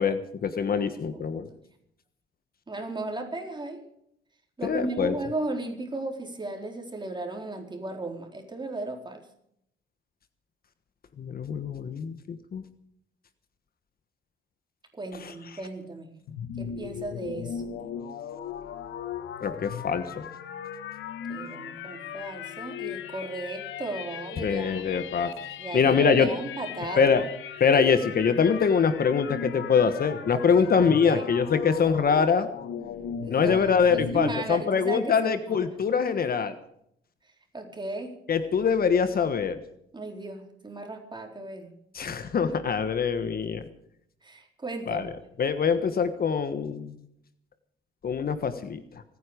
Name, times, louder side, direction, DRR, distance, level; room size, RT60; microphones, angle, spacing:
voice 1, 0.0-1.5 4.6-5.1 11.2-12.6 19.4-20.2 24.4-25.3 25.7-26.3 27.0-27.2 27.6-32.5 33.3-36.5 38.3-39.6 41.9-43.6 44.9-45.1 45.4-46.9 48.0-48.8, left 6 dB, 50° left, 11 dB, 1.3 m, -24 dB
voice 2, 0.8-1.6 2.7-3.8 4.6-9.2 14.9-16.1 16.6-17.6 21.3-24.9 25.6-27.1 30.3-31.2 33.2-35.7 37.5-38.1 39.9-41.7 44.2-45.2, right 2 dB, 20° right, 2 dB, 4.2 m, -35 dB
sound 1, 16.3-34.4, left 8 dB, 80° left, 1.3 m, -37 dB
25.5 x 9.7 x 5.1 m, 0.73 s
cardioid pair, 90°, 20 cm